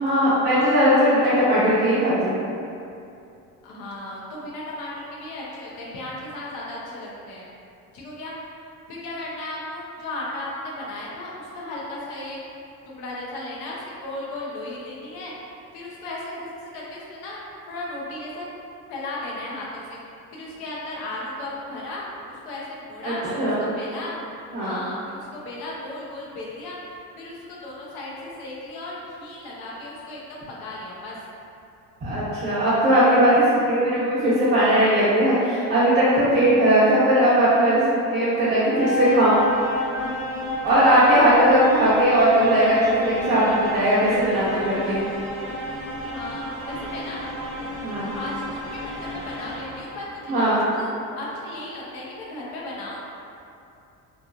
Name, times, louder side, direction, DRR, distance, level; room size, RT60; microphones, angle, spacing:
voice 1, 0.0-2.3 23.0-23.7 24.5-24.8 32.0-37.8 38.1-39.4 40.0-40.1 40.6-45.1 47.8-48.1 50.3-50.6, right 1 dB, 30° right, -13 dB, 0.8 m, -19 dB
voice 2, 3.6-7.4 7.9-8.5 8.9-12.4 13.0-16.5 16.7-17.4 17.7-18.4 18.9-20.0 20.3-24.2 24.6-31.2 40.9-41.4 46.1-47.3 48.1-53.1, left 1 dB, 85° left, -5 dB, 0.8 m, -35 dB
sound 1, 37.6-50.4, left 1 dB, 25° left, 1.1 m, -31 dB
2.9 x 2.3 x 2.4 m, 2.6 s
cardioid pair, 135°, 35 cm